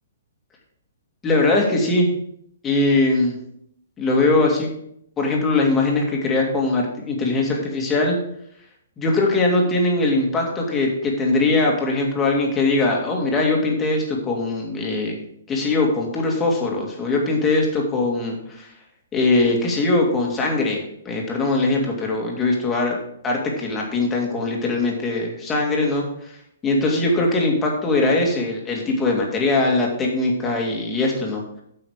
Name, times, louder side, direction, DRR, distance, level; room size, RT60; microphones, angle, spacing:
voice 1, 1.2-2.1 2.6-3.4 4.0-4.7 5.2-8.2 9.0-15.2 15.5-18.7 19.1-23.0 23.2-26.3 26.6-31.4, left 2 dB, 15° left, -1 dB, 2.1 m, -21 dB
8.9 x 5.7 x 5.0 m, 0.72 s
hypercardioid pair, 145°, 0 cm